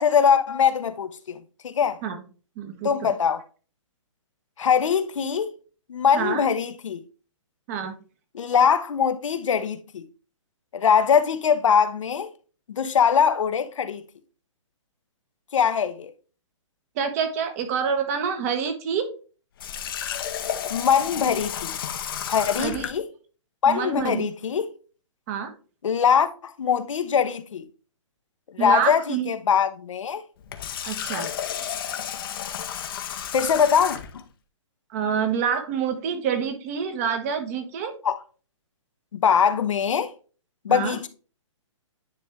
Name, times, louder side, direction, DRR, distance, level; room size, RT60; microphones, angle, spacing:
voice 1, 0.0-2.0 2.8-3.4 4.6-5.5 5.9-7.0 8.3-10.0 10.7-12.3 12.7-14.0 15.5-16.1 20.7-21.7 22.3-23.1 23.6-24.7 25.8-27.6 28.5-30.2 33.3-34.2 38.0-38.2 39.1-40.1 40.6-41.1, left 7 dB, 75° left, 0.9 m, -22 dB
voice 2, 2.6-3.1 6.1-6.4 7.7-7.9 17.0-19.1 22.6-22.9 23.7-24.3 25.3-25.5 28.6-29.3 30.8-31.3 34.9-37.9 40.7-41.0, right 7 dB, 30° right, 1.1 m, -27 dB
Water tap faucet, 19.6-23.0 30.4-34.2, left 9 dB, 45° left, 0.7 m, -32 dB
9.8 x 3.3 x 3.5 m
hypercardioid pair, 160°, 16 cm